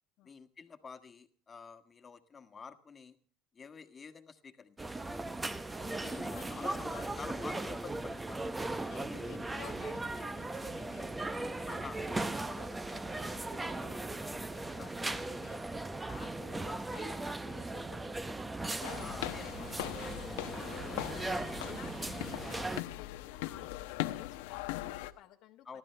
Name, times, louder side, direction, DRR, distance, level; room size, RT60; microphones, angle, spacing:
voice 1, 0.2-3.2 3.5-5.2 6.0-8.6 9.0-9.4 11.7-12.0 14.7-15.2 18.9-19.5 25.6-25.8, left 5 dB, 25° left, 7 dB, 1.5 m, -49 dB
sound 1, 4.8-22.8, right 2 dB, 10° right, 0.8 m, -38 dB
voice 2, 5.8-7.4 8.7-25.8, left 14 dB, 60° left, 1 dB, 1.2 m, -54 dB
sound 2, 18.8-25.1, left 16 dB, 85° left, 0.9 m, -40 dB
29.0 x 12.0 x 3.3 m, 0.38 s
supercardioid pair, 115°, 0 cm